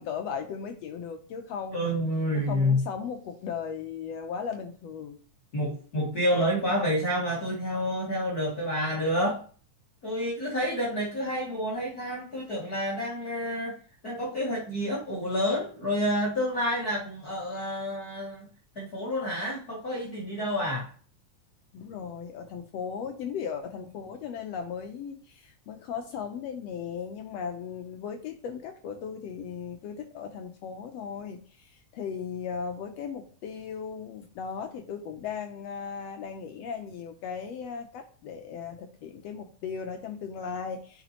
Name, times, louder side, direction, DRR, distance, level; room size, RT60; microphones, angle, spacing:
voice 1, 0.0-2.0 2.3-5.2 21.7-41.0, left 6 dB, 75° left, 1.6 m, -37 dB
voice 2, 1.7-2.8 5.5-9.4 10.0-13.8 14.0-18.5 18.7-20.9, equal, 40° left, 1.6 m, -29 dB
9.8 x 5.2 x 2.9 m
omnidirectional pair, 3.5 m